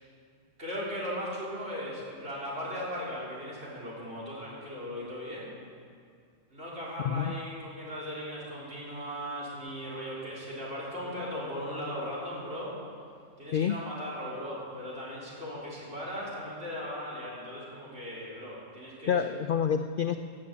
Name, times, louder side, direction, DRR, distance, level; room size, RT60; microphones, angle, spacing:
voice 1, 0.6-5.5 6.5-12.7 13.4-19.2, equal, 55° right, -7 dB, 4.0 m, -38 dB
voice 2, 19.1-20.2, left 8 dB, 65° left, 8 dB, 0.5 m, -27 dB
14.0 x 7.6 x 8.5 m, 2.3 s
omnidirectional pair, 1.4 m